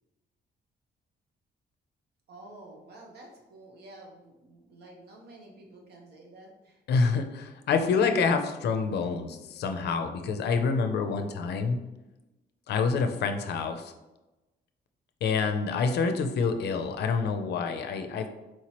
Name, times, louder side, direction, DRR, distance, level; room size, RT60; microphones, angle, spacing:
voice 1, 2.3-6.8, right 2 dB, 70° right, 0 dB, 0.9 m, -50 dB
voice 2, 6.9-11.8 12.7-13.9 15.2-18.3, left 5 dB, 70° left, 7 dB, 0.4 m, -27 dB
4.4 x 3.0 x 2.9 m, 1.0 s
wide cardioid pair, 170°, 18 cm